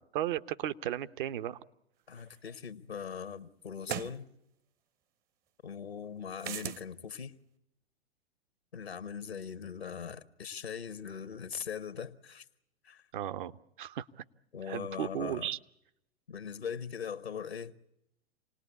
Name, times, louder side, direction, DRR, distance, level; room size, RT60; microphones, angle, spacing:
voice 1, 0.0-1.6 13.1-13.5 13.8-14.1 14.7-15.6, right 11 dB, 55° right, 1.0 m, -35 dB
voice 2, 2.1-4.3 5.6-7.4 8.7-12.4 12.8-13.0 14.5-15.5 16.3-17.7, left 7 dB, 85° left, 1.2 m, -40 dB
sound 1, 2.4-2.5 3.8-4.2 6.4-6.8, right 10 dB, 30° right, 0.9 m, -37 dB
28.0 x 19.5 x 8.3 m
figure-of-eight pair, 105°, 31 cm